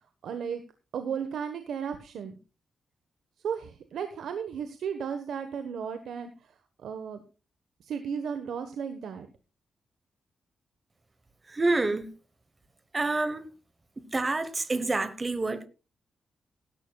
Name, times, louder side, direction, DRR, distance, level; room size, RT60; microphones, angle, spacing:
voice 1, 0.2-0.6 0.9-2.3 3.4-6.5 6.8-7.2 7.8-9.3, right 7 dB, 80° right, 1.2 m, -34 dB
voice 2, 11.5-12.1 12.9-13.5 14.1-15.7, right 2 dB, 20° right, 1.1 m, -27 dB
17.0 x 12.0 x 2.3 m
wide cardioid pair, 145°, 0 cm